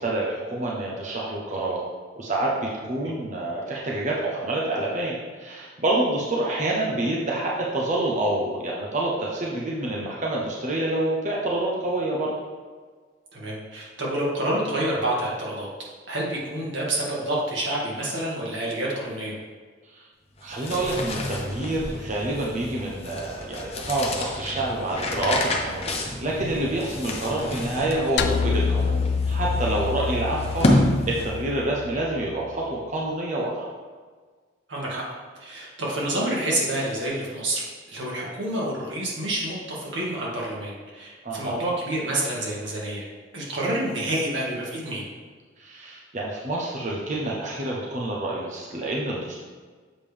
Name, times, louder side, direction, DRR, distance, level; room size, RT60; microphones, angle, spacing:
voice 1, 0.0-1.8 2.2-12.3 19.9-20.0 20.4-29.0 29.3-33.7 41.2-41.6 45.6-49.4, right 2 dB, 40° right, -3 dB, 0.9 m, -27 dB
voice 2, 13.3-15.7 16.1-19.3 27.3-27.4 34.7-35.0 35.4-43.1 43.3-45.1, right 1 dB, 85° right, -4 dB, 1.8 m, -28 dB
sound 1, 20.4-31.6, left 1 dB, 35° left, 0.8 m, -29 dB
sound 2, 28.2-32.6, left 5 dB, 60° left, 0.3 m, -27 dB
7.3 x 5.1 x 3.4 m, 1.5 s
head